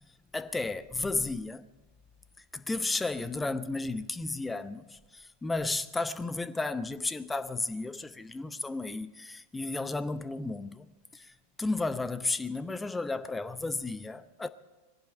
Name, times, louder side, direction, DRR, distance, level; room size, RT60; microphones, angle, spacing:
voice 1, 0.3-1.7 2.4-14.5, left 3 dB, 10° left, 0.7 m, -33 dB
20.5 x 16.0 x 4.4 m
figure-of-eight pair, 90°, 0 cm